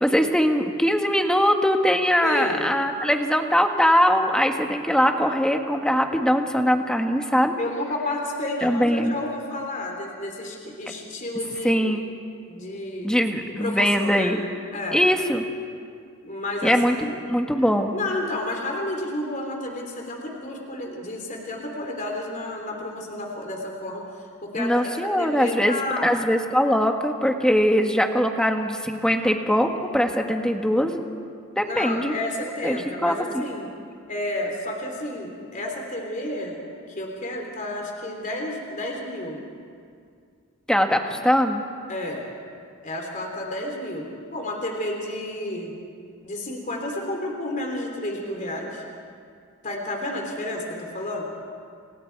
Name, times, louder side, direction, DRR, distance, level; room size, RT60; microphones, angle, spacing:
voice 1, 0.0-7.5 8.6-9.1 11.6-12.0 13.0-14.4 14.9-15.4 16.6-17.9 24.5-31.1 31.6-32.1 32.6-33.4 40.7-41.6, equal, 5° left, 4 dB, 1.6 m, -21 dB
voice 2, 2.2-2.7 7.6-11.9 12.5-13.2 13.6-14.4 14.7-15.0 16.2-16.8 17.1-17.2 17.9-24.8 25.2-26.1 31.6-33.7 34.1-36.6 36.9-39.4 41.9-42.2 42.8-45.7 46.2-48.8 49.6-51.2, left 1 dB, 40° left, 1 dB, 3.3 m, -31 dB
29.5 x 29.0 x 4.7 m, 2.3 s
head